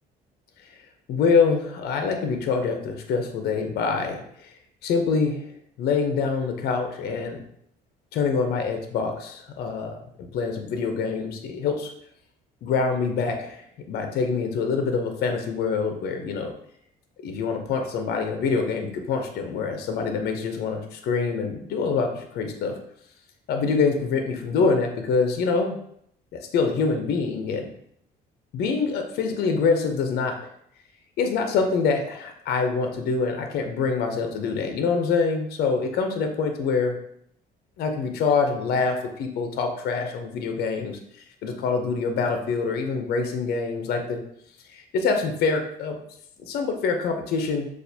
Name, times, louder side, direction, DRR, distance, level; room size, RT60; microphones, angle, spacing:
voice 1, 1.1-4.5 4.8-5.5 5.8-7.4 8.1-9.9 10.3-11.9 12.6-16.5 17.2-22.7 23.5-25.8 26.3-27.7 28.5-30.3 31.2-36.9 37.8-41.0 41.4-44.2 44.7-45.9 46.4-47.7, left 5 dB, 70° left, 5 dB, 0.7 m, -25 dB
6.5 x 2.5 x 2.7 m, 0.70 s
cardioid pair, 110°, 17 cm